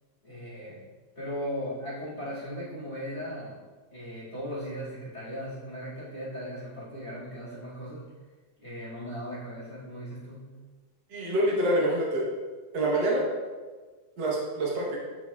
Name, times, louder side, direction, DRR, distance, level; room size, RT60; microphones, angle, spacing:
voice 1, 0.2-0.8 1.1-3.6 3.9-8.1 8.6-10.6, equal, 20° left, -10 dB, 1.3 m, -37 dB
voice 2, 11.1-12.3 12.7-13.2 14.2-15.0, right 1 dB, 85° right, -3 dB, 0.9 m, -26 dB
10.0 x 4.2 x 2.3 m, 1.4 s
omnidirectional pair, 3.6 m